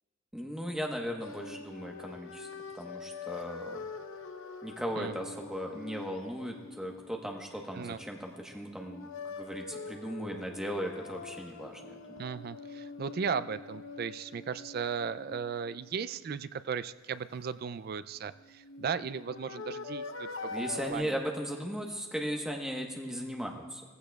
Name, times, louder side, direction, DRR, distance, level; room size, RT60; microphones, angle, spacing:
voice 1, 0.3-2.5 2.7-3.8 4.6-9.1 9.3-12.2 20.5-23.8, equal, 5° right, 1 dB, 1.1 m, -37 dB
sound 1, 1.2-8.3 8.7-16.6 18.3-20.9, left 4 dB, 75° left, 0.8 m, -44 dB
voice 2, 12.2-21.2, right 6 dB, 45° right, 14 dB, 0.3 m, -36 dB
17.0 x 15.0 x 2.3 m, 1.4 s
head